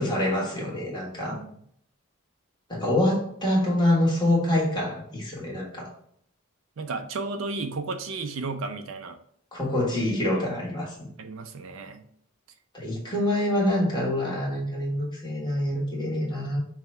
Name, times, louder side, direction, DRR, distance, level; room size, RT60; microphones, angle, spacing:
voice 1, 0.0-1.4 2.7-5.9 9.5-11.1 12.7-16.6, left 1 dB, 20° left, -3 dB, 1.3 m, -26 dB
voice 2, 6.8-9.2 11.2-12.1, right 3 dB, 65° right, 7 dB, 0.4 m, -33 dB
5.5 x 2.2 x 4.3 m, 0.67 s
head